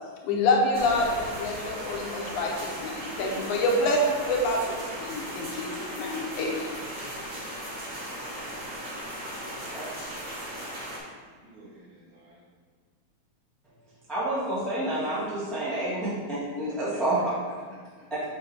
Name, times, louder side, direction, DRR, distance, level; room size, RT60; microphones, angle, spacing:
voice 1, 0.2-6.7, left 2 dB, 75° left, -1 dB, 2.2 m, -27 dB
sound 1, 0.7-11.0, right 1 dB, 40° right, 1.2 m, -37 dB
voice 2, 11.3-12.4 16.7-17.0 17.9-18.1, right 1 dB, 70° right, -8 dB, 3.2 m, -52 dB
voice 3, 14.1-17.3 18.1-18.2, right 1 dB, ahead, -10 dB, 0.5 m, -29 dB
6.9 x 4.8 x 3.4 m, 1.5 s
omnidirectional pair, 3.6 m